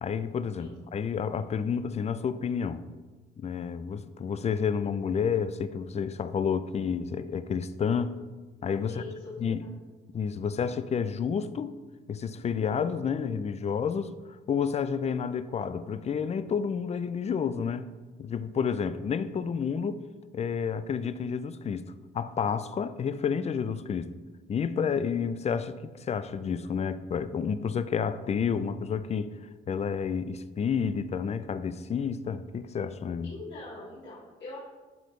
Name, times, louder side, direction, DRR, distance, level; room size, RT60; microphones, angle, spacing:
voice 1, 0.0-2.8 3.4-8.2 8.6-9.0 9.4-9.6 10.1-11.7 12.1-14.2 14.5-17.9 18.2-20.0 20.3-24.1 24.5-29.3 29.7-33.3, left 6 dB, 35° left, 0.4 m, -30 dB
voice 2, 8.9-9.7 33.2-34.6, left 2 dB, 65° left, 2.2 m, -43 dB
11.5 x 4.0 x 3.2 m
cardioid pair, 90°, 20 cm